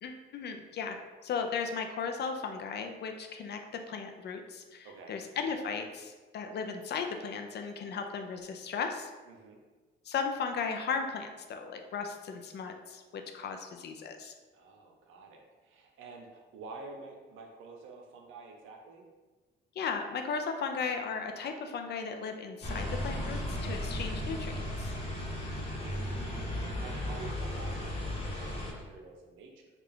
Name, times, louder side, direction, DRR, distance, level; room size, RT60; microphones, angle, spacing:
voice 1, 0.0-1.0 1.2-3.6 3.9-9.1 10.1-14.3 19.8-24.9, left 5 dB, 55° left, 5 dB, 0.5 m, -36 dB
voice 2, 4.8-5.2 9.3-9.6 14.5-19.1 25.5-29.7, right 3 dB, 85° right, 1 dB, 0.6 m, -49 dB
sound 1, 22.6-28.7, left 1 dB, 30° left, 1.1 m, -35 dB
3.3 x 2.4 x 3.6 m, 1.3 s
cardioid pair, 90°, 20 cm